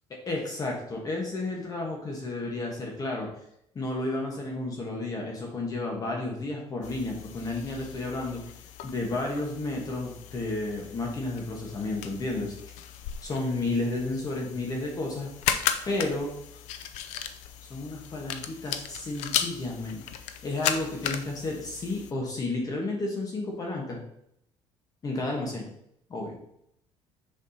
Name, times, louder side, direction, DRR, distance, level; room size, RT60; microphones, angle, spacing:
voice 1, 0.3-3.3 3.7-8.5 8.8-12.6 13.2-15.3 15.8-16.3 17.7-24.0 25.0-25.7 26.1-26.3, left 2 dB, 35° left, 0 dB, 1.3 m, -32 dB
sound 1, 6.8-22.1, left 9 dB, 85° left, 0.6 m, -36 dB
6.8 x 5.8 x 2.9 m, 0.74 s
cardioid pair, 120°, 11 cm